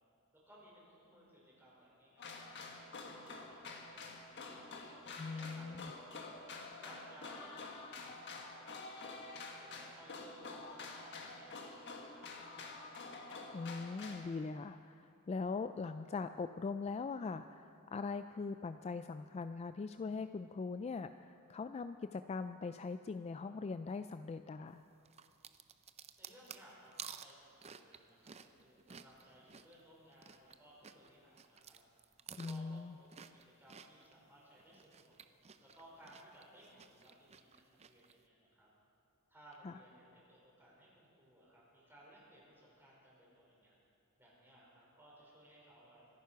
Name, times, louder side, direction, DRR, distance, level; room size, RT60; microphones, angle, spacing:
voice 1, 0.5-4.6 5.2-6.4 6.8-9.2 9.5-12.9 26.2-31.8 32.3-35.2 35.6-38.7 39.3-43.8 44.2-46.2, right 1 dB, 10° right, -5 dB, 4.9 m, -61 dB
sound 1, 2.2-14.2, left 3 dB, 55° left, 1.6 m, -48 dB
voice 2, 5.2-5.9 13.5-24.8 32.4-33.0 39.6-39.7, left 4 dB, 30° left, 10 dB, 0.3 m, -41 dB
sound 2, 25.0-30.6 30.8-34.2 34.6-38.1, right 7 dB, 30° right, 0.5 m, -53 dB
25.5 x 9.4 x 5.8 m, 2.7 s
head